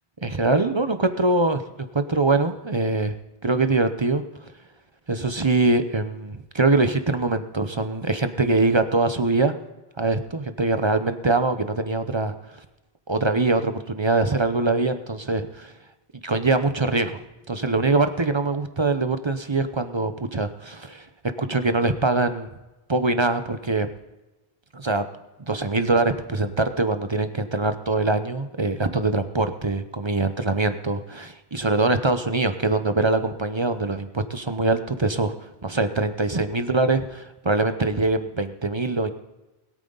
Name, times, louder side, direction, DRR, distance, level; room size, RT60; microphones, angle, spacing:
voice 1, 0.2-3.2 3.4-4.5 5.1-9.5 10.0-12.6 13.1-15.7 16.2-21.1 21.4-22.5 22.9-23.9 24.7-25.0 25.4-39.1, right 3 dB, 30° right, 9 dB, 0.8 m, -23 dB
21.0 x 8.9 x 4.0 m, 1.0 s
omnidirectional pair, 1.1 m